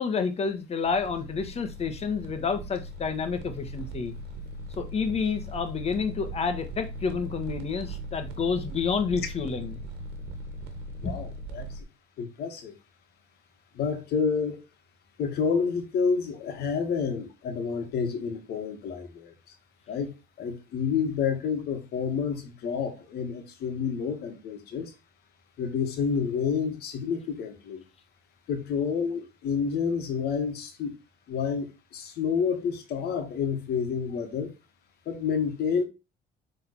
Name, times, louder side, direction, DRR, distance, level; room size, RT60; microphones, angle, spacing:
voice 1, 0.0-4.1 4.8-9.8 11.0-11.1, left 5 dB, 40° left, 1.5 m, -29 dB
sound 1, 0.8-11.8, right 1 dB, 80° right, 1.4 m, -39 dB
voice 2, 11.0-11.7 12.2-12.7 13.7-14.6 15.2-19.3 19.9-24.9 25.6-27.8 28.5-30.9 31.3-34.5 35.1-35.8, left 6 dB, 70° left, 1.9 m, -29 dB
6.8 x 3.9 x 4.3 m
cardioid pair, 110°, 17 cm